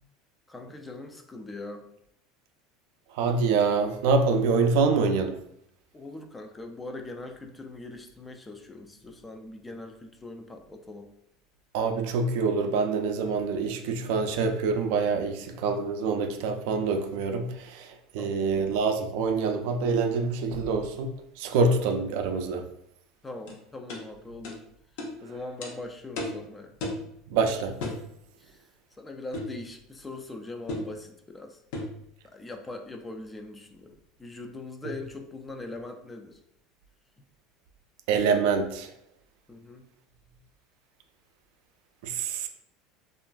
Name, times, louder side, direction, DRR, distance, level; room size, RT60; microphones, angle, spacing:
voice 1, 0.5-1.9 5.9-11.1 18.2-18.5 23.2-24.6 25.2-26.7 28.4-28.5 29.0-31.6 32.2-36.4 39.5-39.8, left 2 dB, 15° left, 4 dB, 0.3 m, -41 dB
voice 2, 3.1-5.3 11.7-21.1 21.4-22.6 27.3-27.7 38.1-38.9 42.0-42.5, right 4 dB, 70° right, 6 dB, 0.4 m, -26 dB
sound 1, 23.5-23.6 23.9-24.0 24.4-24.6 25.0-25.1 25.6-25.7 26.2-26.4 26.8-27.1 27.8-28.0 29.3-29.6 30.7-30.9 31.7-32.0, left 2 dB, 70° left, 0.6 m, -33 dB
2.9 x 2.4 x 2.3 m, 0.75 s
supercardioid pair, 130°, 0 cm